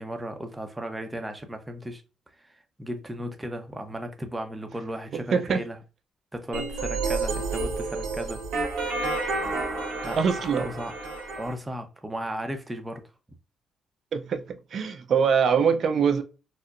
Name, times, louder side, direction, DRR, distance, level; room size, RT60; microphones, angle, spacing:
voice 1, 0.0-2.0 2.5-5.8 6.3-8.4 10.0-10.9 11.3-13.0, right 1 dB, 15° right, 0.7 m, -35 dB
sound 1, 6.5-11.5, right 3 dB, 85° right, 1.2 m, -30 dB
voice 2, 10.2-10.7 14.1-16.2, right 6 dB, 60° right, 0.5 m, -23 dB
4.3 x 2.1 x 2.5 m
cardioid pair, 90°, 0 cm